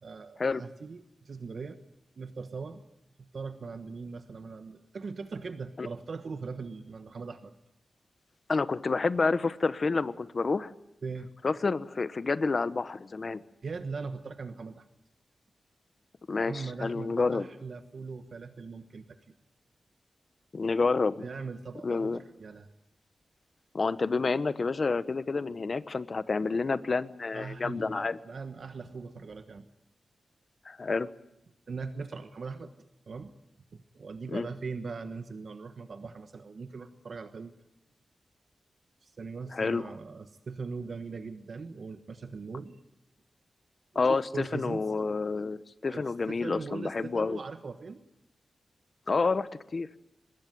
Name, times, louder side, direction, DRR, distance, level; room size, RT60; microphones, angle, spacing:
voice 1, 0.0-1.8 2.2-2.8 3.2-7.5 11.0-11.3 13.6-14.8 16.5-19.1 21.2-22.7 27.3-29.7 31.7-32.7 33.1-33.3 33.7-37.5 39.0-42.8 43.9-44.8 45.9-48.0, right 4 dB, 55° right, 9 dB, 1.3 m, -40 dB
voice 2, 8.5-10.7 11.4-13.4 16.3-17.5 20.5-21.1 21.8-22.2 23.7-28.2 30.6-31.1 34.3-34.5 39.5-39.8 43.9-47.4 49.1-49.9, left 4 dB, 40° left, 14 dB, 1.0 m, -29 dB
23.5 x 21.0 x 9.3 m, 0.83 s
wide cardioid pair, 145°, 0 cm